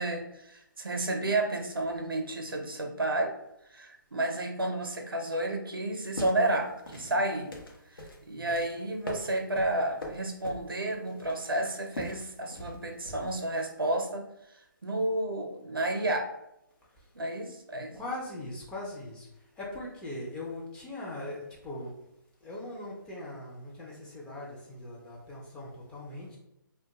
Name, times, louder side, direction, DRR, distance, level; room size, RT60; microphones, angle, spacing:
voice 1, 0.0-3.3 3.7-7.5 8.2-14.2 14.8-16.3 17.1-18.0, right 1 dB, 85° right, 4 dB, 0.6 m, -31 dB
sound 1, 5.9-13.4, left 1 dB, 80° left, 0.7 m, -43 dB
voice 2, 17.9-19.3 19.6-21.9 22.4-26.4, left 1 dB, 10° left, -5 dB, 0.3 m, -40 dB
2.2 x 2.2 x 2.8 m, 0.84 s
figure-of-eight pair, 140°, 12 cm